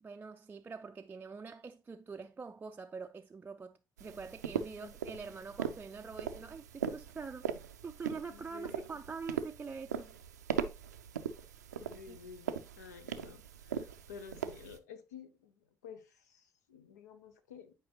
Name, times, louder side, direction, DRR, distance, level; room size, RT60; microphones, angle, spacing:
voice 1, 0.0-7.5 7.8-10.2 12.1-12.2, right 5 dB, 20° right, 0.4 m, -45 dB
sound 1, 4.0-14.8, right 8 dB, 80° right, 0.4 m, -40 dB
voice 2, 8.3-8.9 11.8-17.7, left 7 dB, 75° left, 0.7 m, -52 dB
9.3 x 4.8 x 2.8 m
figure-of-eight pair, 50°, 9 cm